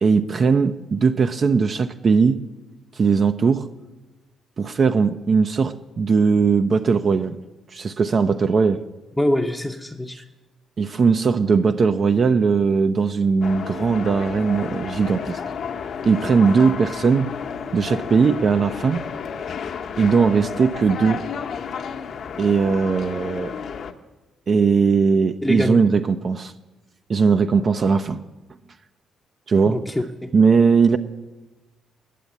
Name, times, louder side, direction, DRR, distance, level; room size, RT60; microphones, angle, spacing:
voice 1, 0.0-2.4 3.0-3.7 4.6-7.4 7.7-8.8 10.8-15.4 16.0-17.3 17.7-19.0 20.0-21.2 22.4-23.5 24.5-26.5 27.1-28.2 29.5-29.8 30.3-31.0, right 5 dB, 45° right, 8 dB, 0.4 m, -19 dB
voice 2, 9.2-10.2 17.1-17.2 25.4-25.8 29.7-30.3, left 1 dB, 5° left, 1 dB, 0.6 m, -24 dB
sound 1, 13.4-23.9, left 6 dB, 65° left, 0.8 m, -32 dB
10.0 x 7.1 x 9.4 m, 1.1 s
cardioid pair, 90°, 0 cm